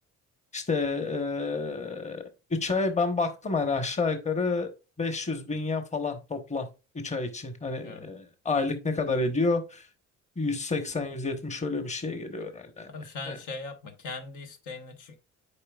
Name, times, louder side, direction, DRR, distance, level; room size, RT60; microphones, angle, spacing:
voice 1, 0.5-2.2 2.5-4.7 5.0-6.7 6.9-9.9 10.4-12.9 13.3-13.4, left 3 dB, 25° left, 1.1 m, -29 dB
voice 2, 12.9-15.2, left 3 dB, 85° left, 1.3 m, -40 dB
8.4 x 4.9 x 2.4 m
cardioid pair, 90°, 30 cm